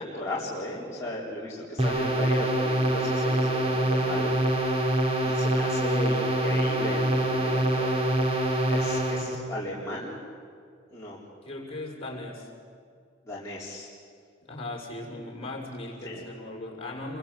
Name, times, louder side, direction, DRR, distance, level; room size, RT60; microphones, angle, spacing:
voice 1, 0.0-4.8 5.2-7.9 8.7-10.2 10.9-11.2 13.3-13.9 16.0-16.2, left 1 dB, 15° left, -8 dB, 4.1 m, -35 dB
sound 1, 1.8-9.3, right 1 dB, 30° right, 3.8 m, -25 dB
voice 2, 11.4-12.5 14.5-17.2, left 2 dB, 30° left, 0 dB, 6.0 m, -38 dB
29.0 x 23.5 x 8.5 m, 2.3 s
head